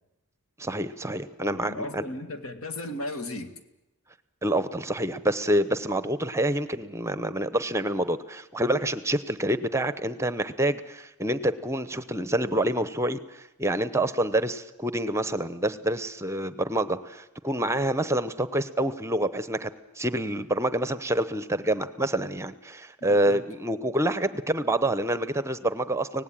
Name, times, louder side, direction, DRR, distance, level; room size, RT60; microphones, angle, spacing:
voice 1, 0.6-2.0 4.4-26.2, right 1 dB, 10° right, 13 dB, 0.8 m, -27 dB
voice 2, 1.4-3.6 23.1-23.4, left 1 dB, 65° left, 8 dB, 2.0 m, -36 dB
25.0 x 18.5 x 9.0 m, 0.97 s
head